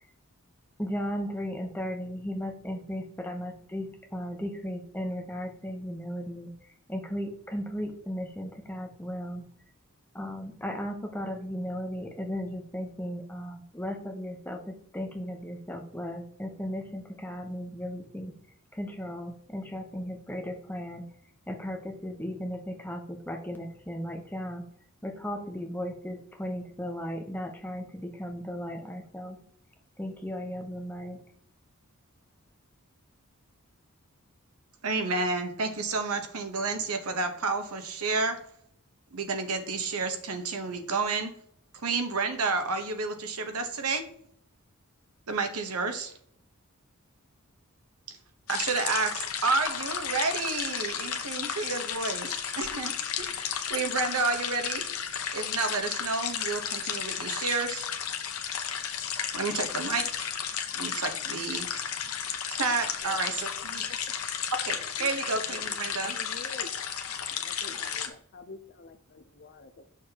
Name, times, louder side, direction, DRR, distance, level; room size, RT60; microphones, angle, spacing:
voice 1, 0.8-6.5 6.9-9.5 10.1-18.3 18.7-21.0 21.5-24.6 25.0-29.4 30.0-31.2, equal, 10° left, 3 dB, 0.8 m, -36 dB
voice 2, 34.8-38.3 39.1-41.3 41.8-44.0 45.3-46.1 48.5-52.9 53.2-54.8 55.3-57.9 59.3-60.4 60.7-61.7 62.6-63.8 64.6-66.2, right 4 dB, 80° right, 6 dB, 1.0 m, -30 dB
sound 1, 48.5-68.1, left 8 dB, 70° left, 0.8 m, -33 dB
voice 3, 63.0-64.0 65.0-66.7 67.2-69.9, left 3 dB, 50° left, 10 dB, 0.5 m, -48 dB
7.1 x 6.4 x 2.9 m, 0.66 s
head